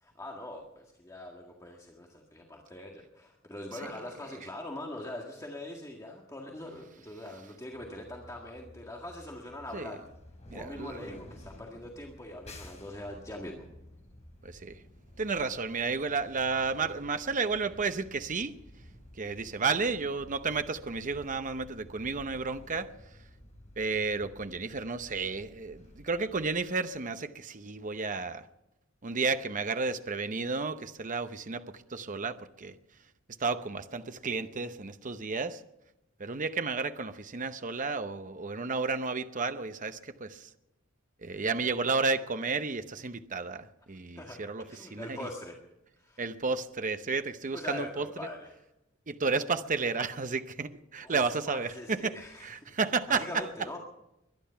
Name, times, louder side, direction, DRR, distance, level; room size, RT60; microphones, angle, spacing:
voice 1, 0.0-10.1 10.5-13.7 44.2-44.4 44.7-45.6 46.0-46.3 47.5-48.6 51.0-53.8, left 1 dB, 15° left, 1.8 m, -43 dB
sound 1, 7.7-26.6, left 1 dB, 35° left, 4.8 m, -53 dB
voice 2, 10.5-11.1 14.4-14.7 15.2-18.6 19.2-22.9 23.8-28.4 29.0-31.6 31.9-32.7 33.4-35.6 36.2-40.5 41.2-44.6 44.9-45.2 46.2-48.0 49.1-52.1 52.4-53.4, right 4 dB, 40° right, 0.8 m, -32 dB
22.5 x 10.5 x 5.7 m
head